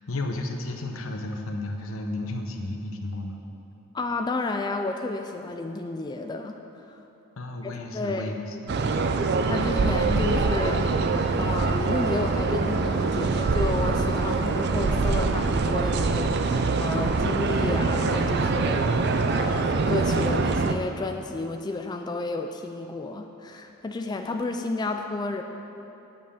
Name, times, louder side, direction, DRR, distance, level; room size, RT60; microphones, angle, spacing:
voice 1, 0.1-3.4 7.4-9.1, left 2 dB, 80° left, 4 dB, 0.8 m, -33 dB
voice 2, 3.9-7.0 7.6-8.3 9.4-10.9 11.4-25.4, left 3 dB, 20° left, 5 dB, 0.3 m, -31 dB
sound 1, 8.7-20.7, right 3 dB, 50° right, 0.4 m, -24 dB
9.2 x 5.5 x 6.7 m, 3.0 s
head